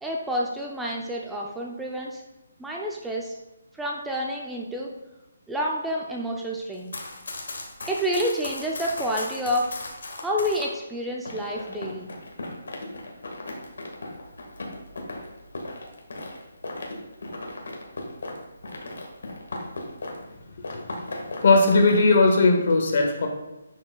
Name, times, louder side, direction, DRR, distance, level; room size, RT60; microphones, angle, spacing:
voice 1, 0.0-2.2 2.6-3.4 3.8-4.9 5.5-6.9 7.9-9.7 10.2-12.1, equal, 5° right, -2 dB, 0.5 m, -29 dB
Run, 6.7-10.7 11.3-20.3 20.6-22.0, left 2 dB, 75° left, 1.6 m, -37 dB
voice 2, 20.6-20.9 21.4-23.3, left 3 dB, 50° left, 3 dB, 1.3 m, -19 dB
10.0 x 5.4 x 2.3 m, 1.0 s
hypercardioid pair, 165°, 0 cm